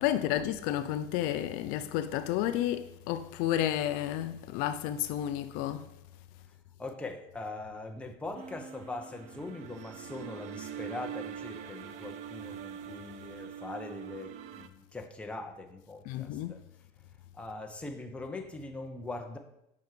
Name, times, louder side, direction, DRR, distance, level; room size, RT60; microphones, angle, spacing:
voice 1, 0.0-5.9 16.1-16.6, left 12 dB, 65° left, 0.4 m, -31 dB
voice 2, 6.8-16.6 17.3-19.4, left 2 dB, 10° left, 0.6 m, -41 dB
sound 1, 8.3-14.7, right 9 dB, 50° right, 0.4 m, -43 dB
7.0 x 5.7 x 3.2 m
cardioid pair, 145°, 15 cm